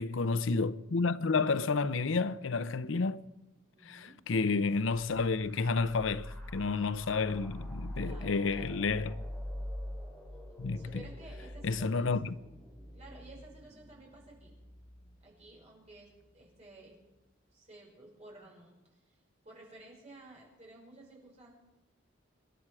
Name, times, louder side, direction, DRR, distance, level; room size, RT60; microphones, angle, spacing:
voice 1, 0.0-3.2 3.9-9.1 10.6-11.0 11.6-12.3, left 4 dB, 90° left, 0.6 m, -30 dB
voice 2, 3.7-4.2 8.0-9.2 10.7-12.1 12.9-14.6 15.2-17.0 17.5-19.2 19.4-21.5, right 2 dB, 35° right, 6.2 m, -54 dB
sound 1, 4.9-16.2, left 1 dB, 5° left, 3.6 m, -45 dB
26.5 x 11.0 x 4.8 m
head